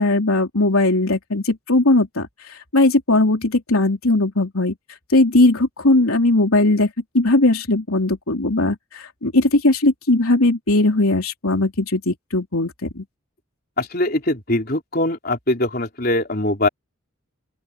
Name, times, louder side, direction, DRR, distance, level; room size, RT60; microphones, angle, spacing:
voice 1, 0.0-2.3 2.7-4.7 5.1-13.0, left 2 dB, 90° left, 3.5 m, -18 dB
voice 2, 13.8-16.7, left 1 dB, 45° left, 4.4 m, -22 dB
open air
head